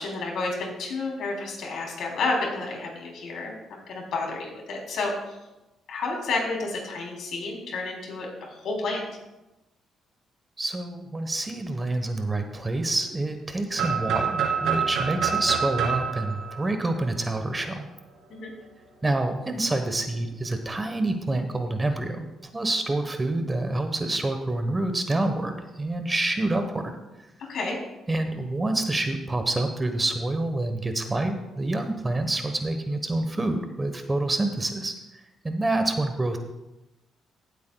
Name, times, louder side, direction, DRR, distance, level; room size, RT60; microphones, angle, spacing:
voice 1, 0.0-5.1 5.9-9.0 18.3-18.5 27.5-27.8, left 3 dB, 70° left, -1 dB, 3.3 m, -30 dB
voice 2, 10.6-17.9 19.0-22.3 22.5-26.9 28.1-34.9 35.4-36.4, right 2 dB, 20° right, 7 dB, 1.1 m, -27 dB
sound 1, 13.8-17.6, right 7 dB, 80° right, 2.3 m, -27 dB
17.0 x 8.2 x 2.3 m, 1.0 s
cardioid pair, 90°, 0 cm